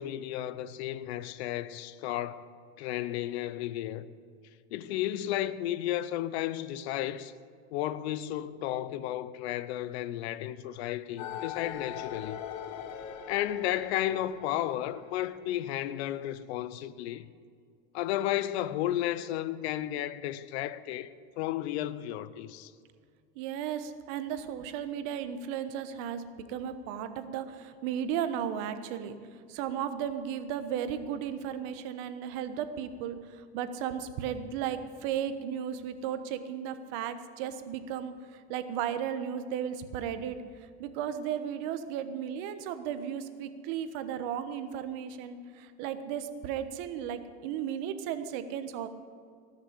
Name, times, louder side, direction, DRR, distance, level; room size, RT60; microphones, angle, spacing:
voice 1, 0.0-2.4 2.8-4.1 4.7-7.3 7.7-12.4 13.3-17.3 17.9-22.7, left 13 dB, 80° left, 0.7 m, -33 dB
sound 1, 11.2-16.3, left 9 dB, 60° left, 1.3 m, -42 dB
voice 2, 23.4-29.1 29.5-48.9, right 9 dB, 70° right, 1.2 m, -35 dB
19.0 x 6.6 x 8.2 m
supercardioid pair, 100°, 32 cm